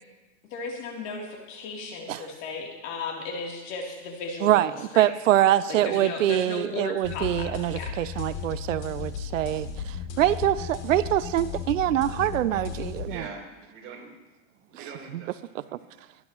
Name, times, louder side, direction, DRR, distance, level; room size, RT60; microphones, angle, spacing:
voice 1, 0.4-5.1 5.7-7.9, left 3 dB, 45° left, 0 dB, 3.3 m, -35 dB
voice 2, 4.4-13.1, right 13 dB, 90° right, 16 dB, 0.6 m, -24 dB
sound 1, 7.0-13.1, left 7 dB, 65° left, 3.1 m, -35 dB
voice 3, 12.6-14.1 14.5-16.1, right 5 dB, 35° right, 0 dB, 3.7 m, -44 dB
26.0 x 10.5 x 3.1 m, 1.1 s
supercardioid pair, 135°, 38 cm